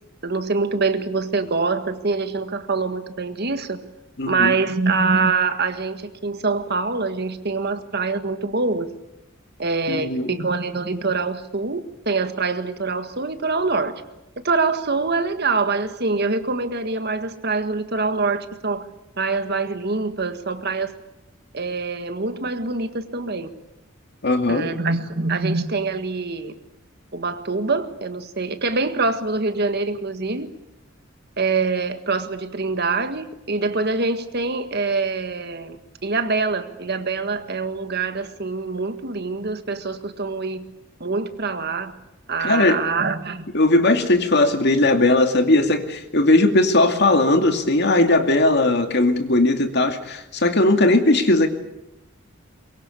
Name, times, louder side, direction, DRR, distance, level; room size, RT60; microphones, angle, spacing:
voice 1, 0.2-3.8 4.3-8.9 9.6-14.0 14.4-18.9 19.2-20.9 21.5-23.5 24.5-26.5 27.1-30.5 31.4-35.8 36.0-40.6 41.0-41.9 42.3-43.5, right 4 dB, 55° right, 1.7 m, -24 dB
voice 2, 4.2-4.5 9.9-10.4 24.2-24.7 42.4-42.8 43.5-51.5, left 2 dB, 55° left, 2.4 m, -18 dB
23.0 x 23.0 x 8.4 m
head